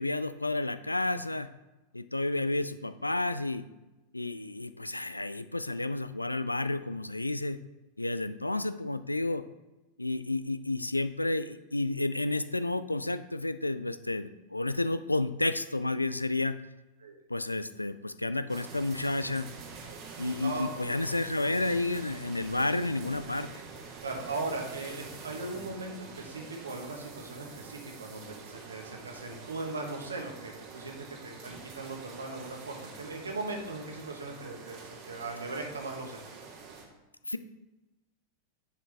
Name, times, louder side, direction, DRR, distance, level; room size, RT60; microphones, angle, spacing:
voice 1, 0.0-1.5 1.9-3.6 4.1-7.6 8.0-9.4 10.0-16.5 17.3-19.5 20.2-23.5 37.3-37.4, left 2 dB, 85° left, 14 dB, 0.3 m, -31 dB
sound 1, 18.5-36.8, right 4 dB, 40° right, 1.5 m, -46 dB
voice 2, 24.0-30.9 31.2-36.3, right 3 dB, 75° right, 2 dB, 1.4 m, -38 dB
9.8 x 4.8 x 3.5 m, 1.1 s
figure-of-eight pair, 90°, 0 cm